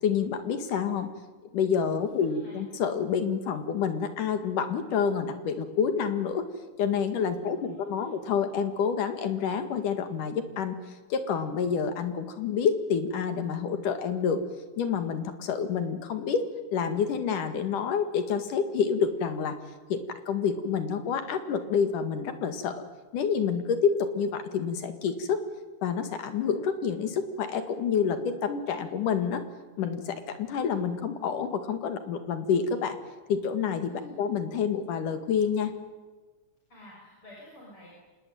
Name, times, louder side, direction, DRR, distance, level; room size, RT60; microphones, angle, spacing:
voice 1, 0.0-1.1 1.5-6.5 6.8-10.7 11.1-14.4 14.8-16.4 16.7-19.5 19.9-20.0 20.3-22.7 23.1-25.4 25.8-29.4 29.8-33.0 33.3-35.7, left 6 dB, 85° left, 8 dB, 3.5 m, -28 dB
voice 2, 1.9-2.6 7.2-8.1 33.9-34.2 36.7-37.9, left 1 dB, 40° left, -4 dB, 7.5 m, -50 dB
26.0 x 20.0 x 9.3 m, 1.3 s
omnidirectional pair, 3.6 m